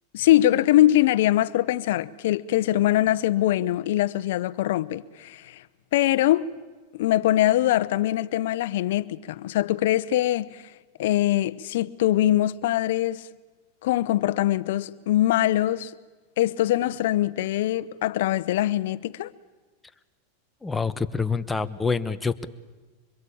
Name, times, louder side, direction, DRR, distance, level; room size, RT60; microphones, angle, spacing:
voice 1, 0.1-5.7 5.9-6.4 6.9-10.7 11.0-13.3 13.8-15.9 16.4-19.3, left 14 dB, 70° left, 0.9 m, -22 dB
voice 2, 20.6-22.5, left 4 dB, 10° left, 1.1 m, -26 dB
25.5 x 22.0 x 8.7 m
hypercardioid pair, 120°, 0 cm